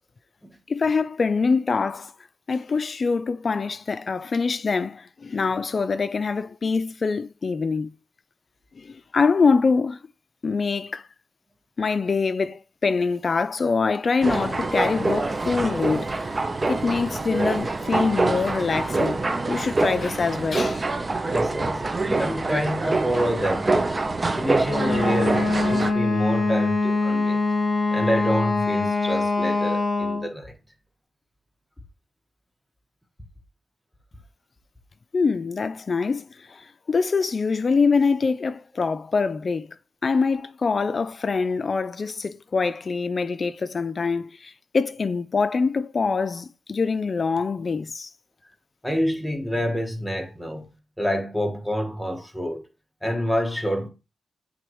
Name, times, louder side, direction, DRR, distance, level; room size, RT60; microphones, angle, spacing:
voice 1, 0.7-2.1 2.5-7.9 8.8-10.0 10.4-11.1 11.8-16.3 16.7-20.8 35.1-39.7 40.0-48.1, left 4 dB, 50° left, 0.4 m, -24 dB
sound 1, 14.2-25.9, right 3 dB, 30° right, 0.7 m, -25 dB
voice 2, 21.3-21.9 22.2-23.9 24.4-27.4 27.9-30.5 48.8-52.6 53.0-53.9, equal, 5° left, 1.5 m, -27 dB
Wind instrument woodwind instrument, 24.6-30.3, left 3 dB, 30° left, 2.2 m, -23 dB
8.4 x 3.9 x 3.1 m
cardioid pair, 90°, 0 cm